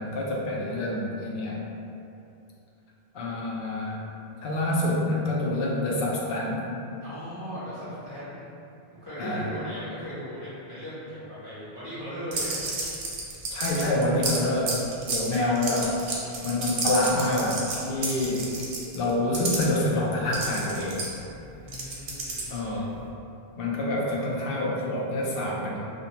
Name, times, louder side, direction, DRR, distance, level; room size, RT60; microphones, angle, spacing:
voice 1, 0.0-1.6 3.1-4.0 4.4-6.7 9.2-9.5 13.5-14.7 15.1-16.0 16.4-17.6 17.8-18.5 18.9-21.0 22.5-22.9 23.6-25.8, left 1 dB, 65° left, -4 dB, 0.7 m, -27 dB
voice 2, 7.0-8.5 9.0-12.6 15.3-15.5 21.5-22.9, equal, 25° left, -14 dB, 0.9 m, -38 dB
sound 1, 12.3-19.7 20.3-22.7, right 3 dB, 65° right, 0.7 m, -31 dB
2.6 x 2.1 x 2.8 m, 2.7 s
omnidirectional pair, 1.1 m